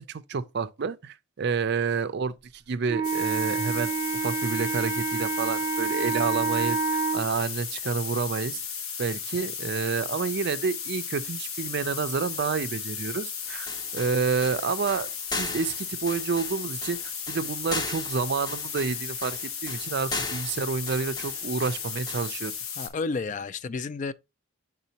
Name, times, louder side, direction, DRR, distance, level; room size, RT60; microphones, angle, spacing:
voice 1, 0.0-3.9 4.2-8.6 9.0-15.1 15.4-22.5, right 5 dB, 50° right, 0.4 m, -29 dB
Wind instrument woodwind instrument, 2.9-7.2, right 4 dB, 15° right, 0.7 m, -28 dB
sound 1, 3.0-22.9, left 7 dB, 85° left, 1.3 m, -35 dB
sound 2, 13.4-22.3, left 2 dB, 20° left, 0.7 m, -37 dB
voice 2, 22.8-24.1, left 4 dB, 35° left, 0.3 m, -31 dB
9.2 x 3.7 x 2.8 m
head